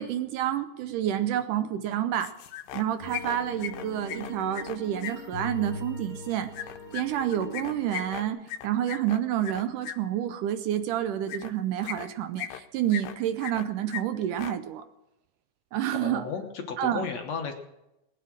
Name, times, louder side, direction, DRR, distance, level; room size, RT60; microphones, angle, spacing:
voice 1, 0.0-2.4 2.7-6.5 6.9-14.8 15.7-16.3 16.8-17.1, right 11 dB, 75° right, 10 dB, 2.1 m, -29 dB
sound 1, 2.2-2.8 3.1-5.1 6.5-10.0 11.3-11.5 11.8-12.6 12.9-13.7 13.9-14.0 14.3-14.5, left 11 dB, 85° left, 2.5 m, -37 dB
sound 2, 3.0-8.3, left 3 dB, 40° left, 3.1 m, -41 dB
voice 2, 15.9-17.5, left 5 dB, 60° left, 4 dB, 2.0 m, -34 dB
20.0 x 9.5 x 6.2 m, 0.90 s
omnidirectional pair, 4.0 m